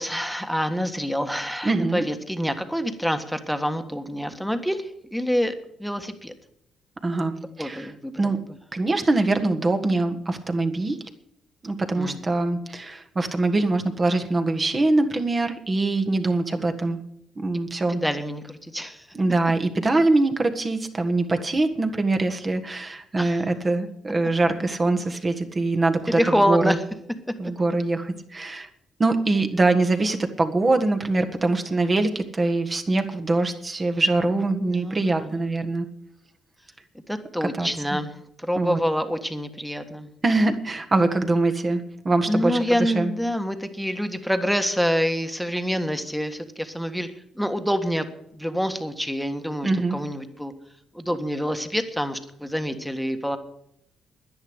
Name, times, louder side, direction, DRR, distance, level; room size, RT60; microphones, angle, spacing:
voice 1, 0.0-6.3 7.6-8.3 11.9-12.2 17.9-19.1 23.2-23.4 26.1-26.8 27.3-27.4 34.2-34.3 34.7-35.3 37.1-38.1 38.4-40.1 42.3-48.1 48.3-50.5 50.9-53.4, equal, ahead, 8 dB, 1.6 m, -27 dB
voice 2, 1.6-2.0 7.0-8.4 8.7-11.0 11.6-17.0 17.4-18.0 19.1-26.8 27.4-28.7 29.0-35.8 37.6-38.0 38.6-38.8 40.2-43.1 49.6-50.0, right 2 dB, 30° right, 6 dB, 1.6 m, -23 dB
10.5 x 10.5 x 8.0 m, 0.76 s
cardioid pair, 90°, 0 cm